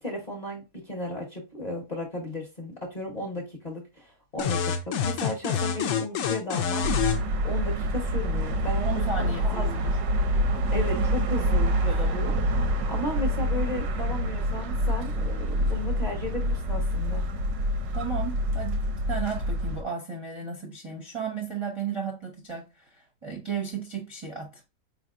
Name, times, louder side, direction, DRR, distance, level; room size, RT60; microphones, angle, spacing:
voice 1, 0.0-6.9 7.4-9.7 10.7-12.4 12.9-17.2, left 1 dB, 30° left, 0.8 m, -34 dB
sound 1, 4.4-7.2, left 7 dB, 70° left, 0.7 m, -27 dB
sound 2, 6.8-19.8, equal, 90° right, 1.3 m, -26 dB
voice 2, 8.8-9.9 11.9-12.3 17.9-24.6, right 6 dB, 30° right, 0.5 m, -34 dB
4.5 x 3.4 x 2.4 m
omnidirectional pair, 1.9 m